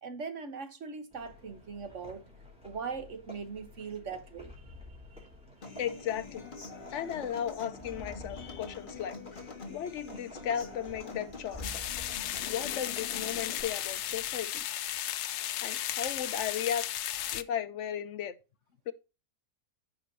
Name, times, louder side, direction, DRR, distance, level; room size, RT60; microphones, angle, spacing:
voice 1, 0.0-2.2 2.6-4.5 5.6-5.8, right 5 dB, 50° right, 1.5 m, -40 dB
sound 1, 1.1-14.4, left 1 dB, 5° right, 3.6 m, -51 dB
Human voice / Acoustic guitar, 5.6-13.6, left 3 dB, 35° left, 1.8 m, -45 dB
voice 2, 5.8-6.4 6.9-9.2 9.7-11.8 12.1-14.9 15.2-18.3 18.9-19.0, left 9 dB, 55° left, 1.0 m, -36 dB
sound 2, 11.6-17.4, left 12 dB, 90° left, 1.2 m, -35 dB
14.5 x 5.1 x 2.7 m
omnidirectional pair, 1.6 m